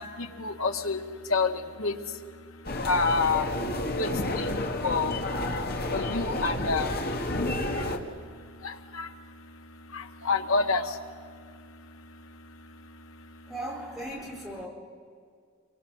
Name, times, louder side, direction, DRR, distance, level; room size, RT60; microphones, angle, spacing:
voice 1, 0.4-1.0 1.3-1.5 1.8-1.9 2.9-3.5 4.0-4.1 4.4-5.1 5.9-6.9 9.0-9.1 10.3-10.8, left 4 dB, 80° left, 5 dB, 1.8 m, -26 dB
sound 1, 2.6-8.0, left 1 dB, 45° left, 2.0 m, -30 dB
voice 2, 13.5-14.7, right 1 dB, ahead, -3 dB, 4.6 m, -37 dB
27.5 x 24.0 x 6.4 m, 2.1 s
head